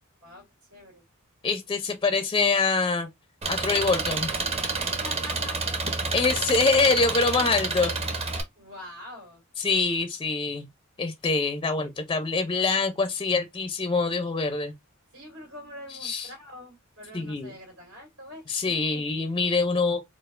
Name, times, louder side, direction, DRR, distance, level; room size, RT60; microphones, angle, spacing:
voice 1, 0.7-1.0 4.8-5.6 8.6-9.4 15.1-19.0, left 1 dB, 85° right, 2.1 m, -44 dB
voice 2, 1.4-3.1 3.5-4.3 6.1-7.9 9.6-10.7 11.0-14.7 16.0-16.3 17.1-17.5 18.5-20.0, left 4 dB, 20° left, 0.4 m, -25 dB
Engine, 3.4-8.4, right 3 dB, 30° right, 0.6 m, -29 dB
4.2 x 2.3 x 2.3 m
head